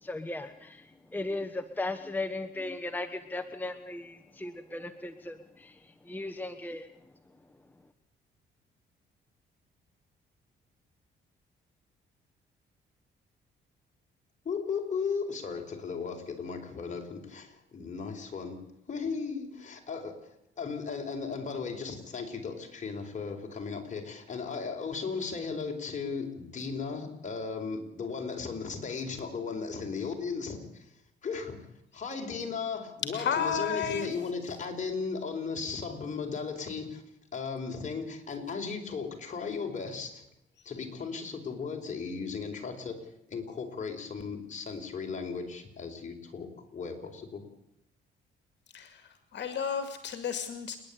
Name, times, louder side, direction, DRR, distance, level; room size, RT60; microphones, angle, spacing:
voice 1, 0.0-6.9, left 2 dB, 10° left, 7 dB, 1.2 m, -37 dB
voice 2, 14.4-30.9 31.2-31.6 31.9-37.0 37.3-40.2 40.6-47.4, left 5 dB, 40° left, 2 dB, 4.7 m, -36 dB
voice 3, 33.1-34.1 40.6-40.7 48.7-50.8, left 7 dB, 65° left, 8 dB, 2.4 m, -32 dB
29.0 x 10.5 x 8.5 m, 0.79 s
cardioid pair, 90°, 20 cm